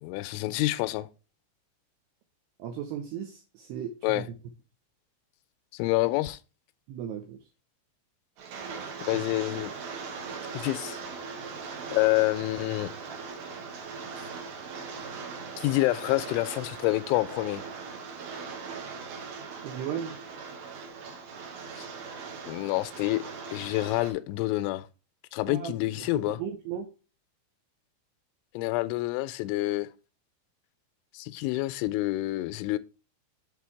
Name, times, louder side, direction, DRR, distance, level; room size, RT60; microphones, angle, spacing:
voice 1, 0.0-1.1 4.0-4.3 5.7-6.4 9.1-9.7 10.5-11.0 11.9-12.9 15.6-17.6 21.8-21.9 22.5-23.2 23.5-24.9 25.3-26.4 28.5-29.9 31.1-32.8, left 19 dB, 85° left, 2.9 m, -27 dB
voice 2, 2.6-4.2 6.9-7.4 19.6-20.2 25.5-26.9, right 8 dB, 80° right, 2.4 m, -36 dB
Rain, 8.4-24.1, right 5 dB, 65° right, 2.8 m, -40 dB
7.5 x 4.4 x 4.7 m
omnidirectional pair, 5.5 m